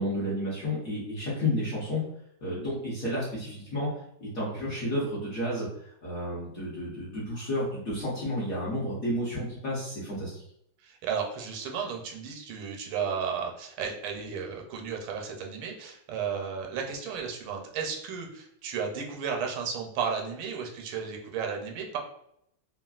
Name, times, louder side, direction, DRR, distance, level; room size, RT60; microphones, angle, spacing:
voice 1, 0.0-2.0 2.4-3.9 4.2-5.7 6.0-10.4, left 1 dB, 55° left, -7 dB, 1.0 m, -31 dB
voice 2, 10.8-22.0, right 6 dB, 85° right, 1 dB, 1.4 m, -33 dB
3.3 x 2.2 x 2.3 m, 0.74 s
omnidirectional pair, 2.1 m